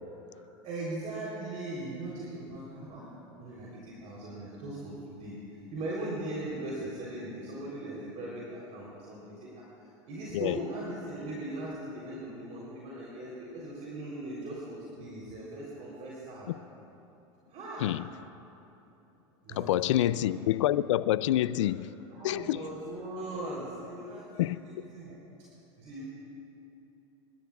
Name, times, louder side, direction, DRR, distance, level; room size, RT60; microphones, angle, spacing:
voice 1, 0.6-3.1 3.4-16.5 17.5-17.9 19.4-20.1 22.1-25.1 25.8-26.1, right 1 dB, 50° right, 3.7 m, -39 dB
voice 2, 19.6-21.9 22.2-22.6 24.4-24.6, left 13 dB, 80° left, 0.4 m, -27 dB
27.5 x 13.0 x 2.4 m
hypercardioid pair, 90°, 16 cm